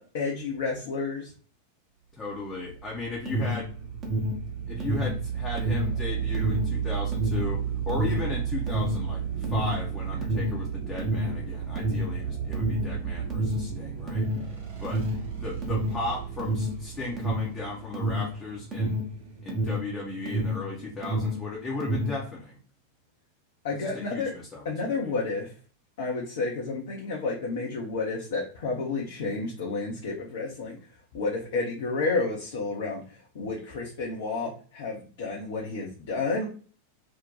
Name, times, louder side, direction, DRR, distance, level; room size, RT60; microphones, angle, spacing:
voice 1, 0.0-1.3 23.6-24.3 24.7-25.5 26.0-30.8 31.1-33.0 33.3-36.5, left 3 dB, 55° left, -2 dB, 0.6 m, -30 dB
voice 2, 2.1-3.7 4.7-14.5 14.8-15.0 15.4-19.0 19.4-22.6 23.8-25.1, left 2 dB, 20° left, -4 dB, 0.7 m, -36 dB
sound 1, 2.3-19.7, right 8 dB, 55° right, 0.8 m, -33 dB
Alarm, 3.2-20.7 21.0-22.2, equal, 25° right, 0.8 m, -29 dB
2.7 x 2.1 x 3.8 m, 0.41 s
figure-of-eight pair, 90°, 0 cm